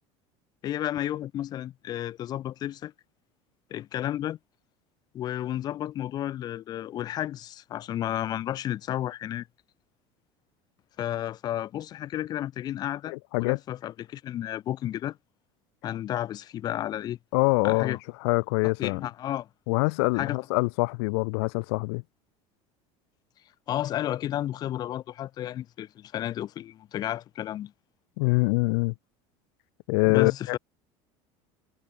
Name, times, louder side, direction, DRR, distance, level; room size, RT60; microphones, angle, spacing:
voice 1, 0.6-2.9 3.7-4.4 5.1-9.5 11.0-15.2 15.8-17.2 17.6-18.0 18.8-19.5 20.2-20.4 23.7-27.7 30.1-30.6, left 12 dB, 30° left, 0.6 m, -32 dB
voice 2, 13.1-13.6 17.3-19.0 19.7-22.0 28.2-28.9 29.9-30.6, left 30 dB, 85° left, 0.4 m, -25 dB
cardioid pair, 170°, 14 cm